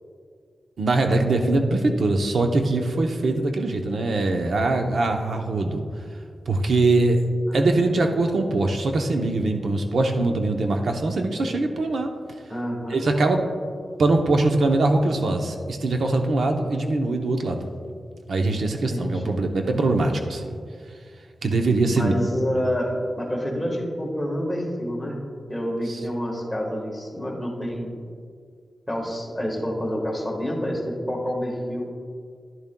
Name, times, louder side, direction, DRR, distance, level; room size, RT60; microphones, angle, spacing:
voice 1, 0.8-5.8 6.5-7.2 7.5-12.1 12.9-13.5 14.0-17.7 18.3-20.5 21.4-22.1 25.9-26.0, right 2 dB, 70° right, 4 dB, 0.7 m, -22 dB
voice 2, 7.5-7.9 12.5-13.0 18.9-19.4 21.9-25.2 25.5-27.9 28.9-31.9, equal, 10° left, -2 dB, 1.4 m, -28 dB
10.5 x 10.5 x 2.2 m, 2.2 s
wide cardioid pair, 140°, 0 cm